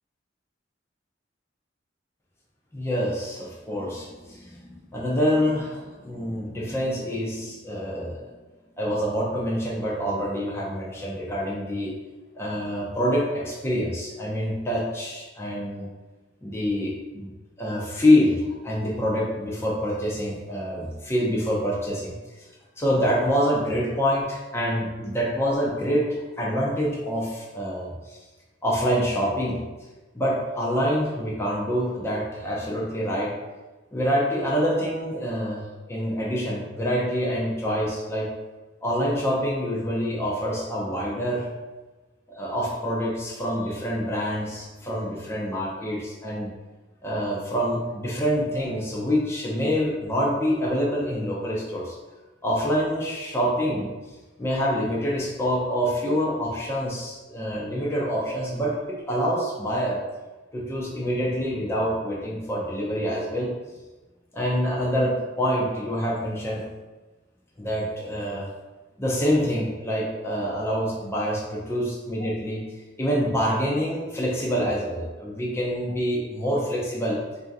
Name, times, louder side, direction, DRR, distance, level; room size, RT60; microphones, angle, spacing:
voice 1, 2.7-8.3 8.8-11.9 12.3-15.9 16.4-17.3 17.6-22.2 22.8-28.2 28.6-29.6 30.1-33.3 33.9-38.3 38.8-41.5 42.3-46.5 47.0-52.0 52.4-53.9 54.4-60.0 60.5-63.5 64.3-66.6 67.6-68.5 69.0-72.6 73.0-77.2, equal, 15° left, -5 dB, 0.6 m, -26 dB
4.2 x 2.7 x 3.5 m, 1.2 s
head